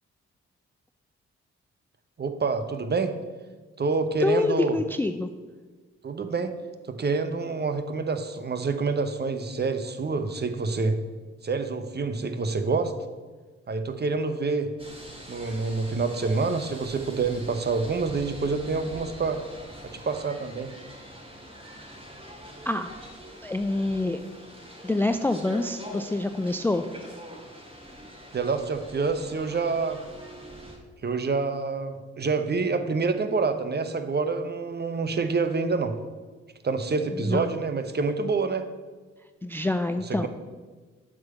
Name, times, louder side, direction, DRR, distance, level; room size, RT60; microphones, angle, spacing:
voice 1, 2.2-3.2 3.8-4.8 6.0-6.5 6.9-11.0 11.4-12.9 13.7-14.7 15.3-19.4 19.9-20.7 28.3-30.0 31.0-35.9 36.6-38.7 40.2-40.3, right 4 dB, 30° right, 9 dB, 0.9 m, -27 dB
voice 2, 4.2-5.3 22.7-22.9 23.4-24.2 24.8-26.8 37.1-37.5 39.4-40.3, left 2 dB, 5° left, 9 dB, 0.4 m, -26 dB
sound 1, 14.8-30.8, equal, 15° right, 2.4 m, -44 dB
7.8 x 3.8 x 6.7 m, 1.4 s
hypercardioid pair, 40°, 32 cm